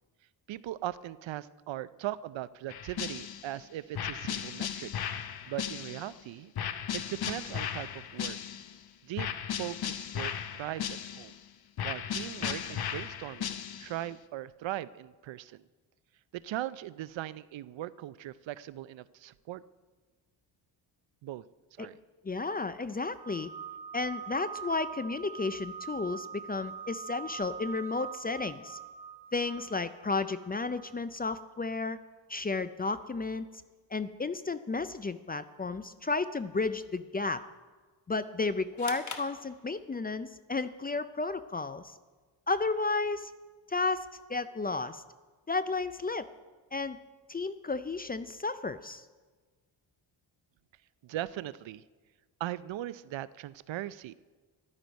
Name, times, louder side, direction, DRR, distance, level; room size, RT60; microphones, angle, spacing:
voice 1, 0.5-4.9 5.5-6.5 6.9-8.4 9.0-11.4 11.8-15.6 16.3-19.6 21.2-21.4 21.8-22.0 51.0-51.8 52.4-54.1, right 14 dB, 75° right, 17 dB, 0.6 m, -39 dB
sound 1, 2.7-3.6 3.9-6.2 6.6-8.8 9.2-11.4 11.8-14.0, left 9 dB, 55° left, 0.8 m, -36 dB
voice 2, 22.2-23.5 23.9-28.8 29.3-32.0 32.3-33.5 33.9-37.4 38.1-41.9 42.5-43.3 43.7-45.0 45.5-46.3 46.7-47.0 47.3-49.0, left 3 dB, 20° left, 13 dB, 0.4 m, -33 dB
sound 2, 23.1-30.9, right 7 dB, 15° right, 2.8 m, -43 dB
sound 3, 38.8-40.2, left 4 dB, 40° left, 1.3 m, -43 dB
14.0 x 11.5 x 5.3 m, 1.4 s
cardioid pair, 120°, 47 cm